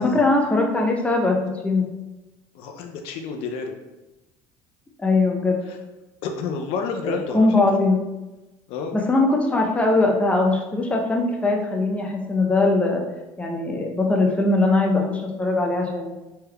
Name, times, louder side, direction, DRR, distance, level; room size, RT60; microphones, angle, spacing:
voice 1, 0.0-1.9 5.0-5.6 7.0-8.0 8.9-13.0 13.4-16.1, left 2 dB, 10° left, 1 dB, 0.5 m, -21 dB
voice 2, 2.5-3.7 6.2-7.5 8.7-9.0, left 5 dB, 70° left, 4 dB, 0.4 m, -29 dB
3.3 x 3.2 x 2.2 m, 1.1 s
supercardioid pair, 100°, 10 cm